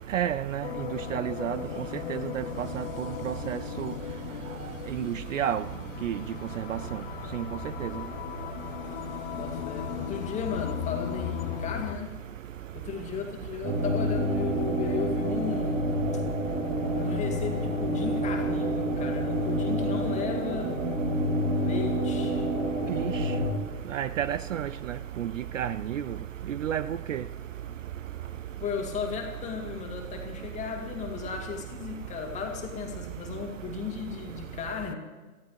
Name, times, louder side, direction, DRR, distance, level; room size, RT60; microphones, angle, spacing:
voice 1, 0.1-0.7 1.1-1.6 2.1-2.8 3.2-3.9 5.0-5.6 6.0-6.2 6.7-6.8 7.3-7.4 7.8-7.9 22.9-23.1 23.9-24.7 25.2-26.0 26.6-27.2, right 10 dB, 55° right, 16 dB, 0.5 m, -30 dB
sound 1, 0.6-11.9, left 11 dB, 40° left, 0.8 m, -37 dB
voice 2, 9.3-12.1 12.7-16.0 17.0-20.7 21.5-22.5 28.6-34.9, left 6 dB, 15° left, 2 dB, 2.1 m, -35 dB
sound 2, 13.6-23.5, right 1 dB, 30° right, 2.7 m, -28 dB
28.5 x 15.0 x 3.1 m, 1.3 s
figure-of-eight pair, 125°, 46 cm